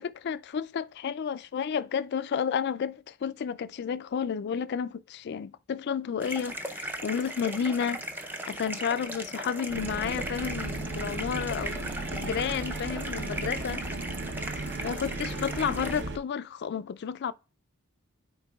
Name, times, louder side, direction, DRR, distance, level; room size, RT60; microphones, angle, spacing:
voice 1, 0.0-13.9 14.8-17.3, left 7 dB, 50° left, 0.3 m, -31 dB
sound 1, 6.2-16.0, right 1 dB, 10° right, 0.5 m, -38 dB
sound 2, 9.7-16.2, right 2 dB, 50° right, 0.7 m, -36 dB
12.5 x 4.4 x 2.3 m
head